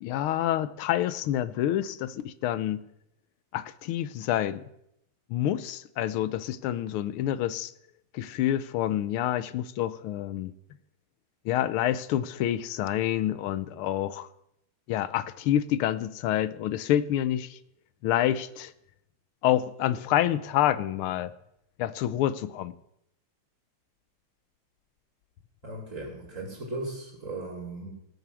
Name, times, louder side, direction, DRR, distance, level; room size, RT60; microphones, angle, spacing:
voice 1, 0.0-2.8 3.5-4.6 5.3-7.7 8.1-10.5 11.4-14.3 14.9-17.6 18.0-18.7 19.4-21.3 21.8-22.7, left 12 dB, 90° left, 14 dB, 1.6 m, -27 dB
voice 2, 25.6-27.9, right 2 dB, 35° right, 0 dB, 2.9 m, -37 dB
18.5 x 6.8 x 6.3 m, 0.80 s
omnidirectional pair, 2.3 m